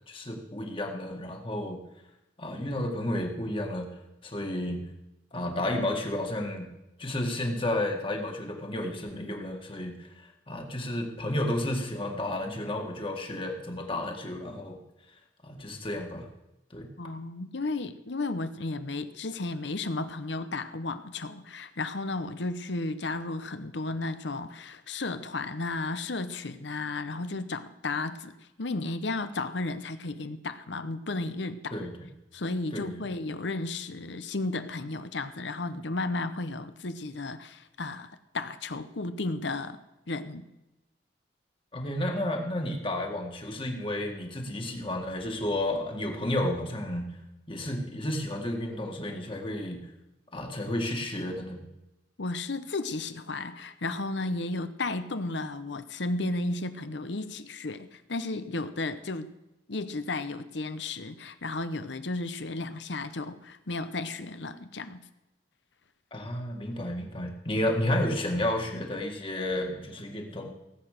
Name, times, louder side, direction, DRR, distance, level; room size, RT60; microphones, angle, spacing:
voice 1, 0.1-1.8 2.4-3.9 4.2-4.8 5.3-6.7 7.0-14.8 15.4-16.3 16.7-16.9 31.7-32.1 32.7-33.0 41.7-47.1 47.5-49.8 50.3-51.6 66.1-70.5, left 1 dB, 25° left, 2 dB, 1.9 m, -32 dB
voice 2, 17.0-31.8 32.3-39.8 40.1-40.5 52.2-59.3 59.7-65.1, left 2 dB, 65° left, 11 dB, 0.9 m, -33 dB
17.5 x 8.2 x 6.6 m, 0.95 s
head